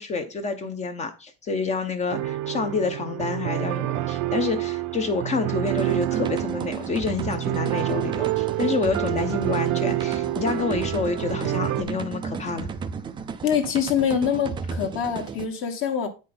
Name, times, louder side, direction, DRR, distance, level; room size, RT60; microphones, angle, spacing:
voice 1, 0.0-12.7, left 4 dB, 25° left, 0.6 m, -28 dB
sound 1, 2.1-11.8, right 15 dB, 70° right, 0.7 m, -28 dB
sound 2, 5.6-15.5, right 5 dB, 15° right, 0.3 m, -34 dB
voice 2, 13.4-16.1, left 8 dB, 45° left, 1.3 m, -24 dB
8.7 x 5.1 x 3.8 m
cardioid pair, 170°, 30 cm